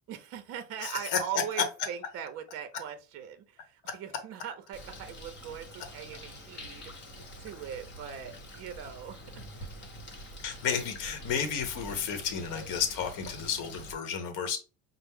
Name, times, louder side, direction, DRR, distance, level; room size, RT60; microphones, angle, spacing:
voice 1, 0.1-9.7, right 9 dB, 45° right, 0.6 m, -41 dB
voice 2, 0.8-1.4 10.4-14.6, left 7 dB, 60° left, 0.9 m, -32 dB
Bird, 4.7-13.9, equal, 30° left, 0.9 m, -46 dB
5.6 x 2.0 x 3.5 m
cardioid pair, 155°, 35 cm